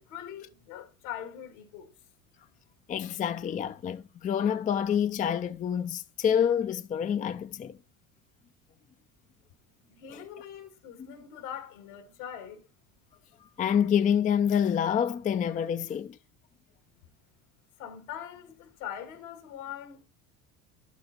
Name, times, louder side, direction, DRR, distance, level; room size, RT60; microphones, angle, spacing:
voice 1, 0.0-1.9 9.9-12.6 17.8-20.0, left 10 dB, 75° left, 2.0 m, -42 dB
voice 2, 2.9-7.8 10.1-10.4 13.6-16.2, left 8 dB, 20° left, 0.4 m, -27 dB
11.5 x 4.2 x 4.0 m
hypercardioid pair, 75°, 43 cm